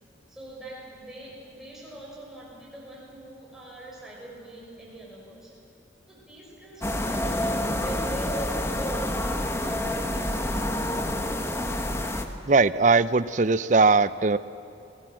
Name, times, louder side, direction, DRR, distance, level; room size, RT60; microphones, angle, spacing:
voice 1, 0.3-5.6 6.1-10.6, right 1 dB, 5° right, -4 dB, 6.3 m, -45 dB
sound 1, 6.8-12.2, left 1 dB, 15° left, 1.2 m, -28 dB
voice 2, 12.5-14.4, right 4 dB, 40° right, 16 dB, 0.6 m, -20 dB
28.0 x 18.5 x 7.7 m, 2.9 s
head